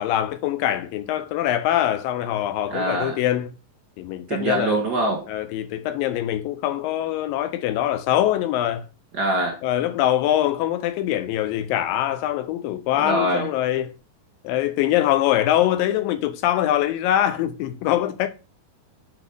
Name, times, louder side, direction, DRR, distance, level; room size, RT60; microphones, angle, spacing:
voice 1, 0.0-3.5 4.0-4.8 5.3-8.9 9.6-13.9 14.4-18.3, left 12 dB, 80° left, 2.2 m, -23 dB
voice 2, 2.7-3.2 4.3-5.3 9.1-9.6 13.0-13.5, right 1 dB, 50° right, 1.2 m, -23 dB
8.4 x 4.2 x 5.2 m
omnidirectional pair, 4.2 m